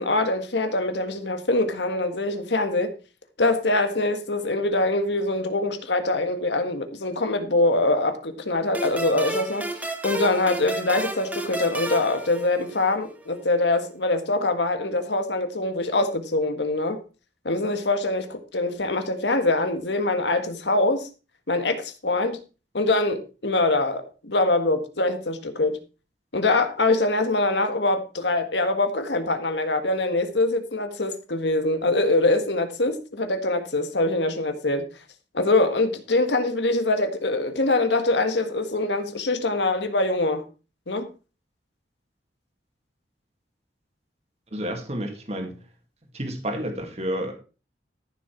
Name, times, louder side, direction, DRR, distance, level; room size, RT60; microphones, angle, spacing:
voice 1, 0.0-2.9 3.4-17.0 17.4-21.1 21.5-22.4 22.7-25.8 26.3-34.8 35.3-40.4 40.9-41.1, left 2 dB, 75° left, 1.7 m, -24 dB
sound 1, 8.7-13.1, right 2 dB, 10° right, 1.5 m, -32 dB
voice 2, 44.5-45.6 46.1-47.3, equal, 35° right, 2.0 m, -30 dB
14.0 x 6.8 x 4.5 m
head